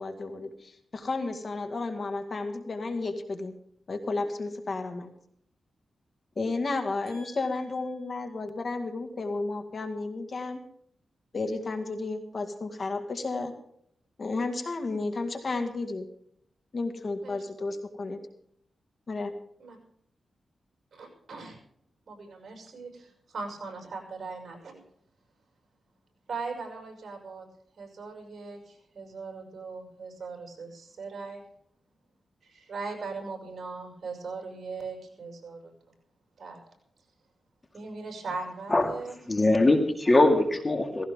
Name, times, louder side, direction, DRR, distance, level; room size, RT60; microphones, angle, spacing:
voice 1, 0.0-3.5 3.9-5.1 6.4-10.6 11.3-13.5 14.2-16.1 16.7-18.2 19.1-19.3, left 3 dB, 50° left, 6 dB, 1.9 m, -32 dB
voice 2, 7.1-7.7 17.2-17.4 19.6-19.8 20.9-21.6 22.1-24.8 26.3-27.5 27.8-28.6 29.0-31.4 32.4-35.7 36.4-36.6 37.7-39.2, right 4 dB, 60° right, 2 dB, 6.1 m, -39 dB
voice 3, 39.3-41.1, left 2 dB, 25° left, 5 dB, 2.2 m, -22 dB
17.5 x 16.0 x 3.7 m, 0.70 s
cardioid pair, 85°, 0 cm